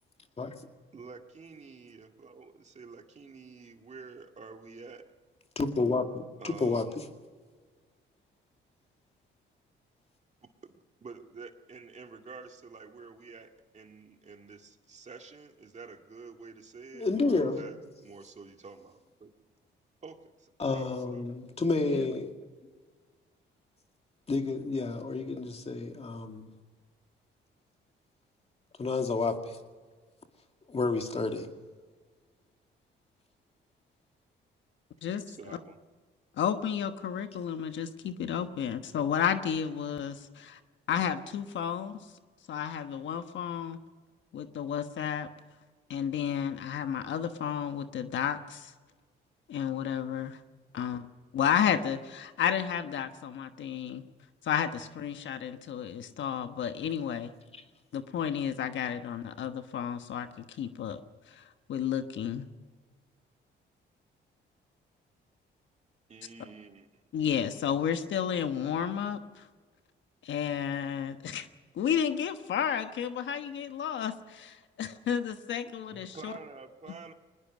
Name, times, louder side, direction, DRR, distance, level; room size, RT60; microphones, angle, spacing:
voice 1, 0.9-5.0 6.4-6.9 10.6-17.8 18.0-19.3 20.0-20.2 20.7-21.2 35.3-35.8 66.1-66.9 75.9-77.1, right 4 dB, 35° right, 5 dB, 2.0 m, -48 dB
voice 2, 5.6-7.1 16.9-17.6 20.6-22.3 24.3-26.5 28.8-29.6 30.7-31.5, left 3 dB, 30° left, 5 dB, 2.3 m, -30 dB
voice 3, 35.0-35.6 36.4-40.6 40.9-42.0 42.5-43.8 44.3-45.3 45.9-48.7 49.5-50.4 50.7-51.1 51.3-54.0 54.4-57.3 57.9-61.0 61.3-61.4 61.7-62.5 67.1-69.5 70.2-71.5 71.7-76.3, left 8 dB, 70° left, 9 dB, 1.3 m, -32 dB
21.0 x 20.0 x 6.3 m, 1.4 s
cardioid pair, 90°, 20 cm